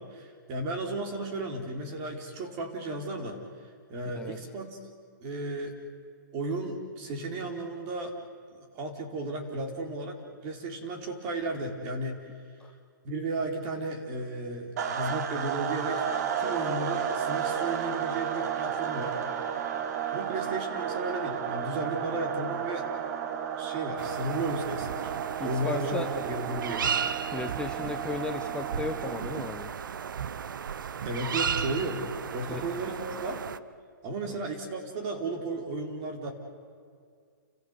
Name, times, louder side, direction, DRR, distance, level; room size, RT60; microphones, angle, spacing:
voice 1, 0.1-3.4 3.9-4.8 5.2-5.7 6.3-8.1 8.5-12.2 13.0-16.1 16.4-19.2 20.1-22.9 23.6-25.1 25.4-26.9 31.0-32.0 32.3-33.4 34.0-36.3, right 2 dB, 35° right, 3 dB, 4.4 m, -34 dB
sound 1, 14.8-29.5, right 8 dB, 55° right, 2.0 m, -33 dB
sound 2, 24.0-33.6, right 7 dB, 75° right, 0.9 m, -35 dB
voice 2, 25.4-26.1 27.3-29.7 32.5-32.6 34.3-34.4, left 4 dB, 10° left, 3 dB, 1.0 m, -36 dB
29.5 x 15.5 x 8.4 m, 2.1 s
hypercardioid pair, 145°, 11 cm